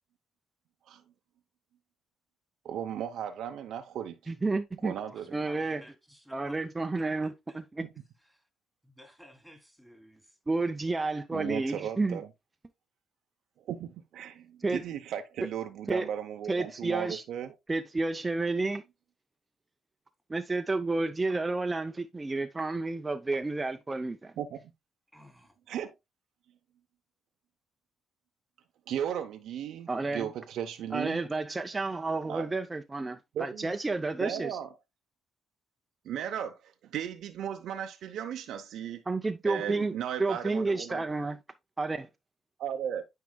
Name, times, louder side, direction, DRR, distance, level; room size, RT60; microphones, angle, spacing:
voice 1, 2.6-4.2 4.8-5.3 11.3-12.3 13.7-17.5 24.4-24.6 25.7-25.9 28.9-31.2 32.3-32.5 33.3-33.7 34.2-34.7 36.0-39.0 39.5-41.0 42.6-43.1, right 9 dB, 75° right, 0.7 m, -36 dB
voice 2, 4.3-5.0 5.3-5.8 6.3-7.6 10.5-12.2 14.6-14.8 15.9-16.1 16.5-17.2 17.7-18.8 20.3-24.3 29.9-30.3 30.9-34.6 39.1-39.9 40.2-41.4 41.8-42.1, right 3 dB, 20° right, 0.6 m, -31 dB
voice 3, 5.1-6.6 7.0-7.6 8.2-8.5 8.8-10.4 25.1-25.6, equal, ahead, 2.8 m, -55 dB
9.4 x 4.6 x 2.2 m
cardioid pair, 90°, 0 cm